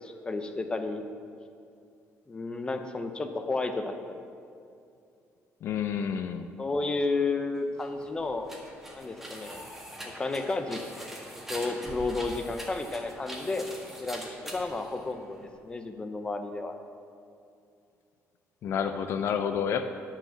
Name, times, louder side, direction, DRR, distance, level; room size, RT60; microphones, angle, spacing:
voice 1, 0.0-1.1 2.3-4.2 6.6-8.5 8.9-9.7 10.2-10.8 11.5-13.7 14.0-15.4 15.6-16.8, left 3 dB, 20° left, 6 dB, 0.7 m, -32 dB
voice 2, 5.6-6.5 18.6-19.8, left 7 dB, 60° left, 8 dB, 0.5 m, -29 dB
sound 1, 7.7-15.6, equal, 5° right, 1.6 m, -43 dB
9.9 x 5.8 x 7.1 m, 2.5 s
cardioid pair, 135°, 5 cm